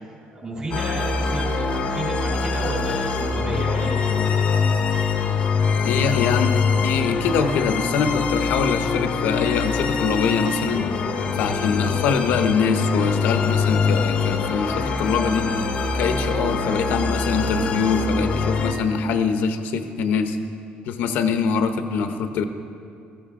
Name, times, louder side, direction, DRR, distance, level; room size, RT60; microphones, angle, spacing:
voice 1, 0.3-4.1, right 1 dB, 30° right, -2 dB, 3.7 m, -31 dB
sound 1, 0.7-18.7, left 5 dB, 40° left, 0.8 m, -23 dB
voice 2, 5.8-6.5 6.8-10.9 11.3-15.5 15.9-20.4 20.9-22.4, left 5 dB, 80° left, 7 dB, 0.9 m, -23 dB
15.5 x 15.0 x 3.8 m, 2.4 s
cardioid pair, 170°, 3 cm